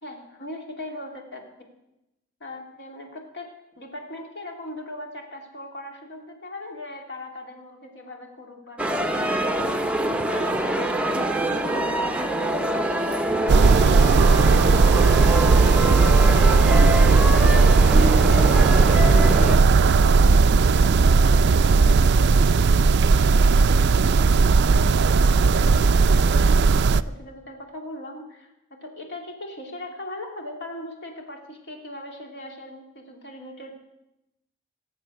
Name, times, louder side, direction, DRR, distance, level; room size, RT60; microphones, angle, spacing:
voice 1, 0.0-1.4 2.4-9.8 10.3-11.4 11.7-15.9 16.5-18.5 18.9-23.3 23.7-33.7, left 1 dB, 55° left, 2 dB, 2.8 m, -40 dB
sound 1, 8.8-19.6, right 1 dB, 5° right, 0.8 m, -25 dB
sound 2, 13.5-27.0, right 4 dB, 55° right, 0.4 m, -16 dB
18.0 x 7.9 x 7.9 m, 0.89 s
head